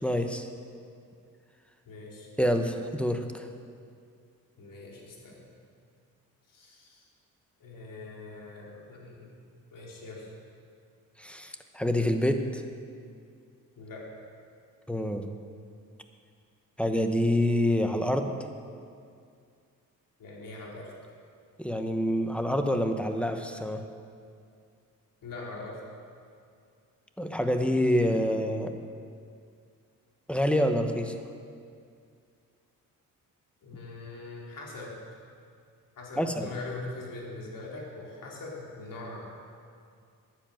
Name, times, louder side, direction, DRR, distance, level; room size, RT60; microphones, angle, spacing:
voice 1, 0.0-0.5 2.4-3.5 11.2-12.6 14.9-15.3 16.8-18.3 21.6-23.8 27.2-28.7 30.3-31.1 36.2-36.5, equal, 5° left, 6 dB, 1.0 m, -27 dB
voice 2, 1.8-2.3 4.6-5.5 6.5-7.1 7.6-9.3 9.7-10.3 13.8-14.1 20.2-20.9 25.2-25.8 33.6-35.0 36.0-39.2, left 2 dB, 65° left, -3 dB, 3.3 m, -42 dB
10.5 x 9.8 x 7.5 m, 2.3 s
cardioid pair, 95°, 35 cm